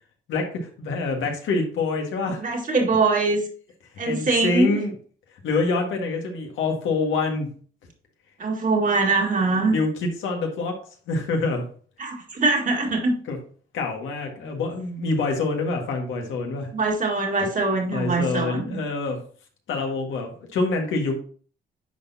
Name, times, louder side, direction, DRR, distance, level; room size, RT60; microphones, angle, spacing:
voice 1, 0.3-2.4 4.1-4.9 5.4-7.5 9.7-10.8 11.1-11.6 13.3-13.4 13.7-16.7 17.9-19.2 19.7-21.2, left 3 dB, 80° left, 2 dB, 1.7 m, -26 dB
voice 2, 2.4-3.4 4.0-4.8 8.4-9.8 12.0-13.1 16.7-18.8, right 3 dB, 40° right, 1 dB, 1.9 m, -22 dB
10.0 x 4.1 x 2.7 m, 0.44 s
cardioid pair, 90°, 20 cm